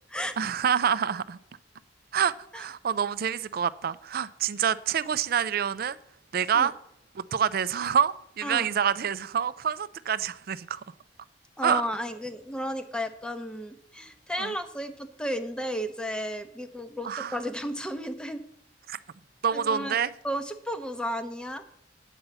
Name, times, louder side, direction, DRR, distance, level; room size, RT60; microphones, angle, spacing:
voice 1, 0.4-1.4 2.1-6.0 6.3-6.7 7.1-10.8 11.6-11.8 14.4-14.5 17.0-17.4 18.9-19.0 19.4-20.1, right 8 dB, 55° right, 0.4 m, -27 dB
voice 2, 11.6-18.4 19.5-20.0 20.2-21.6, equal, 5° left, 0.7 m, -33 dB
9.1 x 5.5 x 8.0 m
head